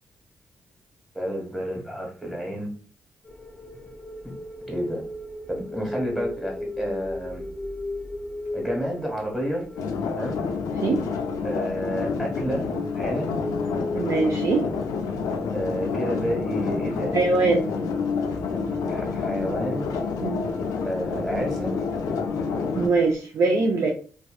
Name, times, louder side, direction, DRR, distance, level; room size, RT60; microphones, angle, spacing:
voice 1, 1.1-2.7 4.7-5.1 5.5-7.4 8.5-9.7 10.1-10.4 11.4-13.4 15.5-17.2 18.8-19.9 20.8-21.7, equal, 5° right, 0 dB, 1.3 m, -30 dB
sound 1, 3.2-23.2, left 2 dB, 20° left, 0.5 m, -38 dB
sound 2, 9.8-22.9, left 5 dB, 85° left, 0.4 m, -28 dB
voice 2, 14.0-14.6 17.1-17.7 20.2-20.4 22.7-23.9, right 3 dB, 60° right, 1 dB, 0.4 m, -22 dB
2.6 x 2.2 x 2.3 m, 0.41 s
supercardioid pair, 55°, 6 cm